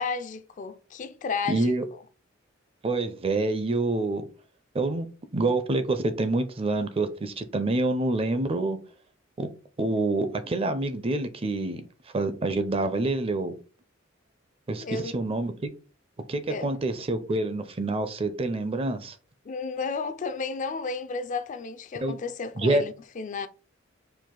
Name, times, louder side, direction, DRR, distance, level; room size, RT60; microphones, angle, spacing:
voice 1, 0.0-1.7 14.8-15.1 16.5-16.7 19.5-23.5, left 4 dB, 40° left, 0.4 m, -32 dB
voice 2, 1.5-1.8 2.8-4.2 4.7-5.1 5.3-8.8 9.4-9.5 9.8-11.8 12.1-13.5 14.7-15.7 16.3-19.2 22.0-22.2 22.6-22.8, right 2 dB, 30° right, 0.5 m, -27 dB
4.6 x 2.4 x 3.7 m
head